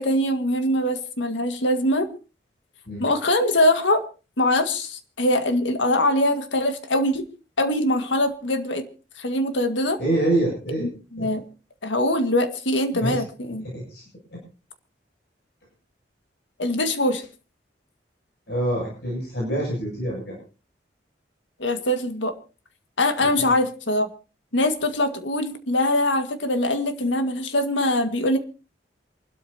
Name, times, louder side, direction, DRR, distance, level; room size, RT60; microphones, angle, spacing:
voice 1, 0.0-2.1 3.0-4.0 4.4-7.2 7.6-8.9 9.2-10.0 10.8-11.4 11.8-13.7 16.6-17.2 21.6-22.3 23.0-24.1 24.5-28.4, left 1 dB, 85° left, 8 dB, 1.9 m, -23 dB
voice 2, 10.0-10.9 11.2-11.3 13.0-13.2 13.6-14.0 14.3-14.4 18.5-20.4 23.4-23.5, right 1 dB, 60° left, -3 dB, 7.7 m, -26 dB
27.5 x 12.5 x 2.8 m, 0.34 s
head